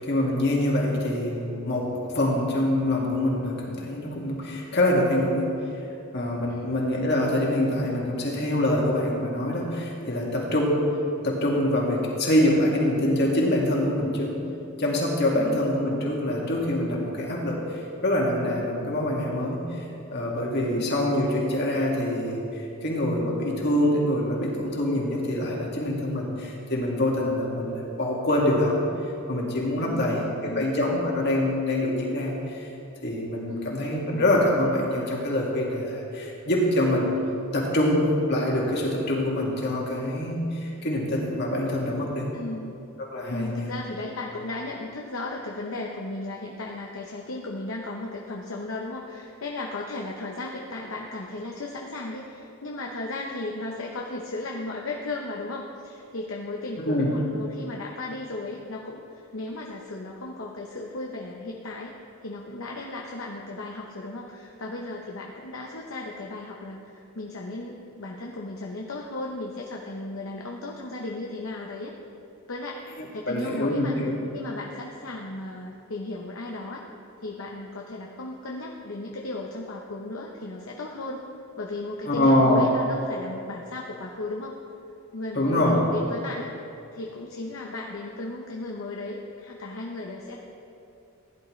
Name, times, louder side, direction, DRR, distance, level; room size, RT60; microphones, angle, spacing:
voice 1, 0.0-5.5 6.1-10.8 11.2-14.4 14.8-19.8 20.1-22.4 22.8-28.8 29.3-32.7 33.0-37.1 37.5-42.3 43.0-43.7 56.8-57.1 73.0-74.2 82.1-82.7 85.3-85.8, left 1 dB, 50° left, -3 dB, 2.1 m, -25 dB
voice 2, 15.3-15.7 20.7-20.9 29.8-30.7 33.5-33.9 42.3-42.7 43.3-61.9 62.2-71.9 72.5-72.8 73.1-73.9 74.3-76.8 77.2-81.3 81.6-84.6 85.1-86.5 86.9-90.4, left 2 dB, 65° left, -1 dB, 0.8 m, -35 dB
16.0 x 10.5 x 3.2 m, 2.7 s
head